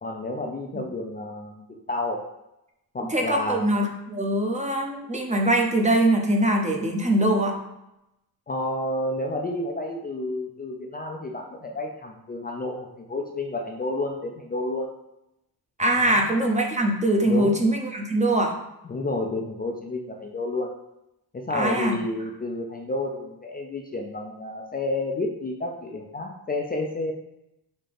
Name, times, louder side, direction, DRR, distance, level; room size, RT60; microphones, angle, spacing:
voice 1, 0.0-2.3 2.9-3.7 8.5-14.9 16.0-16.3 17.3-17.5 18.9-20.7 21.3-27.1, left 2 dB, 25° left, 1 dB, 0.4 m, -30 dB
voice 2, 3.0-7.5 15.8-18.5 21.5-22.0, right 1 dB, 20° right, 1 dB, 0.7 m, -22 dB
5.3 x 2.8 x 3.4 m, 0.87 s
cardioid pair, 100°, 38 cm